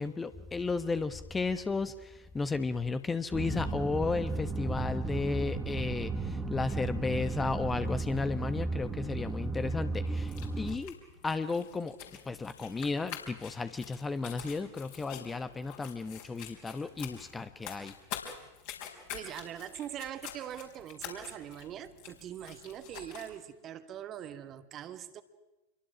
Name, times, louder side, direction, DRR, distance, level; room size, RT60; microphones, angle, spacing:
voice 1, 0.0-11.0 11.2-12.0 12.2-17.9, left 4 dB, 15° left, 0.9 m, -34 dB
sound 1, 3.3-10.8, right 3 dB, 15° right, 1.6 m, -34 dB
sound 2, 10.2-23.3, left 9 dB, 50° left, 4.9 m, -47 dB
voice 2, 18.9-25.2, right 10 dB, 30° right, 1.5 m, -42 dB
27.5 x 23.0 x 6.2 m
figure-of-eight pair, 90°, 0 cm